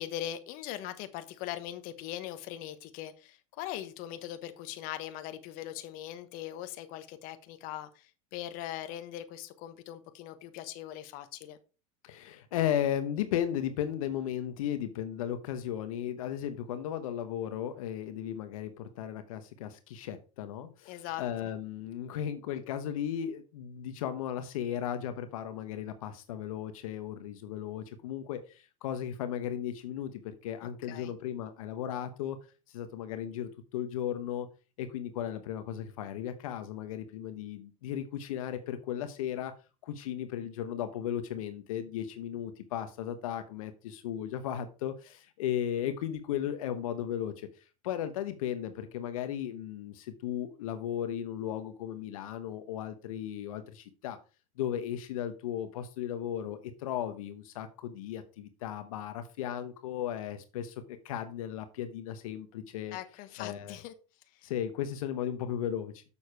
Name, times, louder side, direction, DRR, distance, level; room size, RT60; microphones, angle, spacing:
voice 1, 0.0-11.6 20.8-21.2 30.6-31.1 62.9-63.9 64.3-64.5, left 12 dB, 55° left, 10 dB, 1.2 m, -41 dB
voice 2, 12.0-32.4 32.7-34.5 34.8-39.5 39.8-47.5 47.8-54.2 54.6-60.7 61.0-63.0 63.4-63.8 64.4-66.0, left 10 dB, 80° left, 10 dB, 1.0 m, -35 dB
7.1 x 6.4 x 4.6 m, 0.33 s
supercardioid pair, 110°, 18 cm